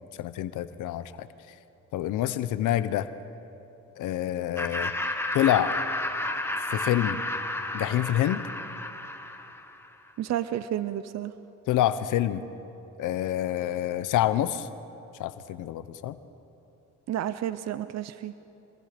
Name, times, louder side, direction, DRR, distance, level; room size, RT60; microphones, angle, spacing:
voice 1, 0.2-1.3 1.9-3.1 4.0-4.9 5.3-5.8 6.7-7.2 7.7-8.4 11.7-12.4 13.0-14.7 15.2-16.2, left 12 dB, 85° left, 13 dB, 0.9 m, -27 dB
Laughter, 4.6-9.9, left 1 dB, 10° left, 1.7 m, -32 dB
voice 2, 10.2-11.3 17.1-18.3, right 11 dB, 60° right, 13 dB, 0.7 m, -31 dB
27.0 x 21.5 x 5.2 m, 2.9 s
cardioid pair, 90°, 30 cm